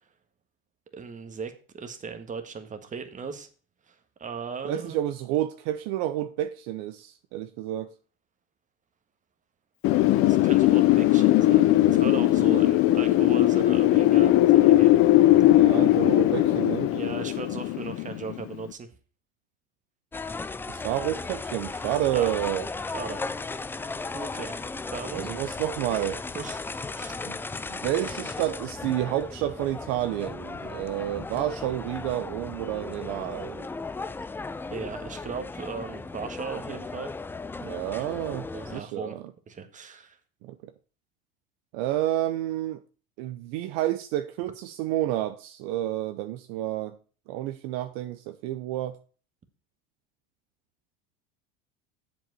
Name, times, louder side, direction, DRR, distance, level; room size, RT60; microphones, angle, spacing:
voice 1, 0.9-3.5 3.9-5.0 10.3-15.0 16.9-18.9 22.1-22.3 22.9-23.2 24.1-24.6 24.9-25.5 26.3-26.6 26.9-27.2 34.7-37.1 38.3-39.2 39.5-40.2, right 5 dB, 25° right, 1.6 m, -37 dB
voice 2, 4.6-7.9 15.4-16.9 20.7-22.7 25.1-26.2 27.2-27.4 27.7-33.7 37.6-39.2 40.4-40.7 41.7-42.8 43.2-47.0 47.3-49.0, right 13 dB, 65° right, 0.7 m, -30 dB
Wind, 9.8-18.5, left 15 dB, 50° left, 0.6 m, -19 dB
sound 1, 20.1-38.8, left 3 dB, 10° left, 0.3 m, -36 dB
7.3 x 5.4 x 6.8 m
supercardioid pair, 100°, 29 cm